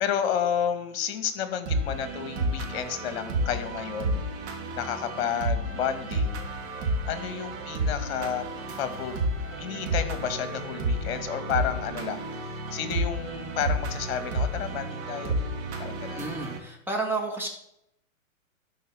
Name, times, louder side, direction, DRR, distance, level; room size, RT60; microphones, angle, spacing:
voice 1, 0.0-4.2 4.8-6.4 7.1-8.5 8.8-9.2 9.6-15.4 15.8-16.2, left 8 dB, 45° left, 9 dB, 2.0 m, -31 dB
sound 1, 1.7-16.6, right 1 dB, 35° right, 2.6 m, -31 dB
voice 2, 16.1-17.5, right 3 dB, 5° right, 0 dB, 2.5 m, -31 dB
11.5 x 5.5 x 7.5 m, 0.78 s
hypercardioid pair, 120°, 41 cm